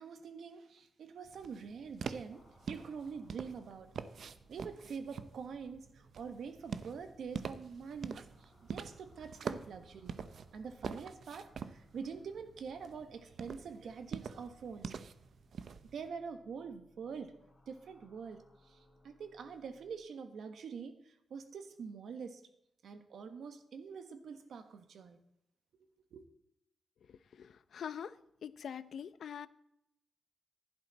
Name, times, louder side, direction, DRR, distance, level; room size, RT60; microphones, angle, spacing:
voice 1, 0.0-2.4 2.7-3.9 4.5-10.2 10.5-15.0 15.9-17.3 17.7-22.4 22.8-25.2 26.1-26.2, right 6 dB, 75° right, 1.4 m, -45 dB
sound 1, 1.2-16.1, right 6 dB, 60° right, 0.6 m, -46 dB
sound 2, 2.3-19.9, left 2 dB, 25° left, 3.7 m, -67 dB
voice 2, 27.1-28.1 28.4-29.5, left 8 dB, 70° left, 0.6 m, -44 dB
15.0 x 11.5 x 4.1 m
wide cardioid pair, 170°, 0 cm